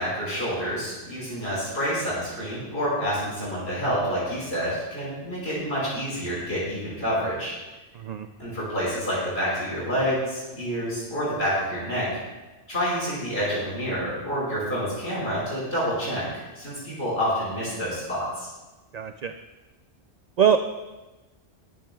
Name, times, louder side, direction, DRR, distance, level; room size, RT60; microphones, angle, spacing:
voice 1, 0.0-7.5 8.4-12.1 12.7-18.5, equal, 70° left, -7 dB, 5.3 m, -28 dB
voice 2, 7.9-8.3 18.9-19.3 20.4-20.6, right 8 dB, 50° right, 7 dB, 0.5 m, -22 dB
22.5 x 10.5 x 2.3 m, 1.1 s
omnidirectional pair, 1.1 m